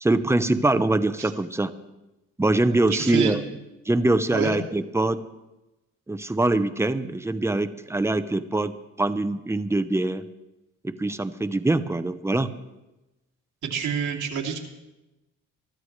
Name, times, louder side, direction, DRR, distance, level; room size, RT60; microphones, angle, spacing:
voice 1, 0.0-1.7 2.4-3.4 3.8-5.2 6.1-10.3 10.8-12.5, right 2 dB, 10° right, 11 dB, 0.8 m, -23 dB
voice 2, 2.9-3.4 4.3-4.5 13.6-14.6, right 7 dB, 85° right, -1 dB, 2.6 m, -27 dB
23.5 x 13.0 x 3.3 m, 0.99 s
cardioid pair, 90°, 30 cm